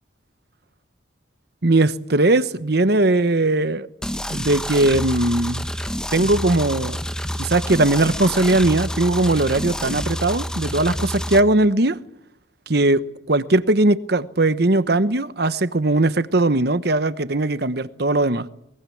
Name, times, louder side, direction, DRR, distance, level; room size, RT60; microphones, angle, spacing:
voice 1, 1.6-3.9 4.3-5.6 6.1-7.0 7.4-12.0 12.7-18.5, right 2 dB, 55° right, 1.1 m, -19 dB
sound 1, 4.0-11.4, equal, 5° left, 0.9 m, -28 dB
22.5 x 22.0 x 8.6 m
head